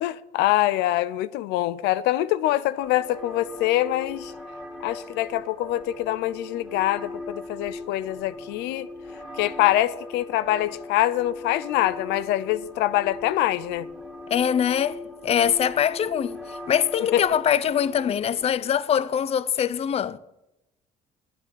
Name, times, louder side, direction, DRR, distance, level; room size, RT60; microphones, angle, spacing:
voice 1, 0.0-4.3 4.8-8.9 9.4-13.9 17.1-17.2, left 14 dB, 90° left, 0.5 m, -24 dB
sound 1, 2.8-18.8, left 2 dB, 5° left, 2.7 m, -40 dB
voice 2, 14.3-15.0 15.2-16.4 16.7-20.2, left 9 dB, 35° left, 0.5 m, -23 dB
9.2 x 8.4 x 8.5 m
cardioid pair, 110°, 17 cm